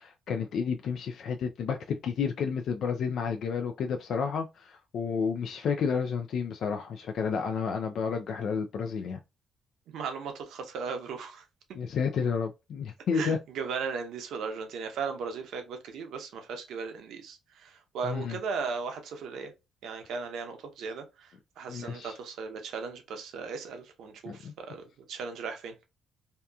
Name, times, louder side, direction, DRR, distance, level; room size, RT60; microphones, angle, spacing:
voice 1, 0.0-9.2 11.7-13.4 18.0-18.4 21.7-22.1 24.3-24.5, left 6 dB, 70° left, 0.3 m, -31 dB
voice 2, 9.9-11.4 13.1-19.5 19.8-25.8, right 5 dB, 80° right, 0.7 m, -37 dB
2.7 x 2.3 x 2.2 m
cardioid pair, 90°, 0 cm